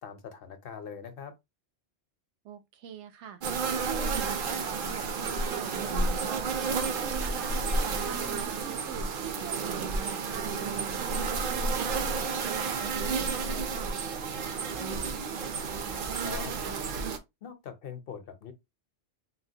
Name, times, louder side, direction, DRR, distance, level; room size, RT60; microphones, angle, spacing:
voice 1, 0.0-1.3 16.2-16.5 17.4-18.5, left 7 dB, 60° left, 0.8 m, -42 dB
voice 2, 2.4-13.9, right 9 dB, 80° right, 0.9 m, -43 dB
sound 1, 3.4-17.2, right 4 dB, 60° right, 0.7 m, -31 dB
3.9 x 2.1 x 2.7 m
omnidirectional pair, 1.2 m